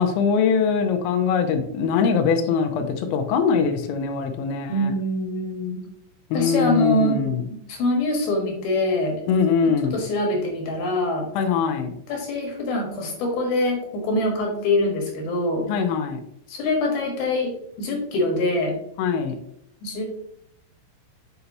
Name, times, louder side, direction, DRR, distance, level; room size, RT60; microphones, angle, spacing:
voice 1, 0.0-4.9 6.3-7.4 9.3-10.0 11.4-12.0 15.7-16.2 19.0-19.4, left 6 dB, 85° left, 6 dB, 3.3 m, -22 dB
voice 2, 4.7-5.8 6.3-7.2 7.5-9.1 9.9-11.3 12.1-15.7 16.5-17.5 17.8-18.7 19.8-20.0, left 1 dB, 65° left, 0 dB, 2.6 m, -24 dB
8.1 x 5.7 x 2.7 m, 0.73 s
omnidirectional pair, 5.8 m